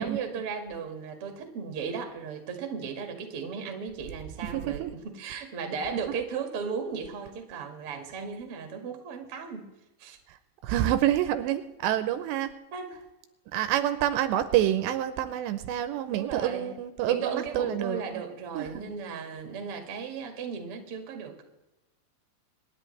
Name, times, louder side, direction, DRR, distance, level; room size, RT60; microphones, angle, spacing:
voice 1, 0.0-9.7 10.0-10.2 12.7-13.0 16.1-16.8 17.0-21.4, right 5 dB, 50° right, 4 dB, 1.8 m, -36 dB
voice 2, 4.5-4.9 10.3-10.4 10.6-12.5 13.5-18.2 18.6-18.8, right 12 dB, 80° right, 11 dB, 2.8 m, -27 dB
27.0 x 10.5 x 3.3 m, 1.0 s
omnidirectional pair, 5.2 m